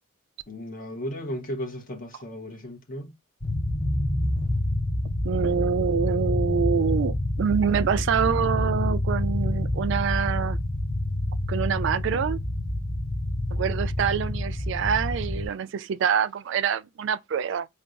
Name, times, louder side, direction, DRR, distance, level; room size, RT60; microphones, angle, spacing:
voice 1, 0.5-3.1, equal, 45° left, 1.1 m, -35 dB
sound 1, 3.4-15.5, left 1 dB, 25° left, 0.8 m, -27 dB
voice 2, 5.2-10.6 11.5-12.4 13.5-17.7, right 7 dB, 65° right, 0.3 m, -26 dB
4.5 x 2.3 x 2.5 m
head